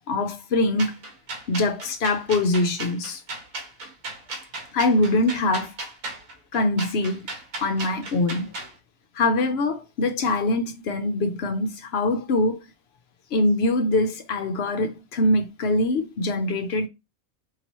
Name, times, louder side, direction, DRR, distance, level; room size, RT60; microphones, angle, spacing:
voice 1, 0.1-0.9 1.5-3.2 4.7-5.7 6.5-7.3 7.6-8.5 9.2-12.6 13.3-16.9, left 2 dB, 60° left, 0.8 m, -23 dB
sound 1, 0.8-8.7, right 2 dB, 85° right, 1.8 m, -36 dB
4.6 x 2.9 x 2.9 m
omnidirectional pair, 1.4 m